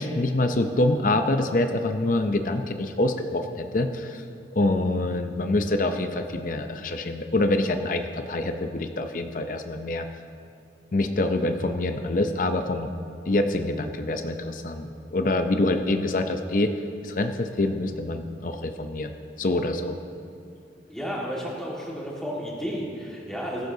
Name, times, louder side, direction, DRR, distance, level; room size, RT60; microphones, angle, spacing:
voice 1, 0.0-4.2 4.5-10.1 10.9-12.9 13.3-16.7 17.0-19.1 19.4-20.0, left 2 dB, 45° left, 7 dB, 0.6 m, -25 dB
voice 2, 20.9-23.7, equal, 5° left, -5 dB, 1.7 m, -32 dB
21.0 x 11.5 x 2.7 m, 2.6 s
head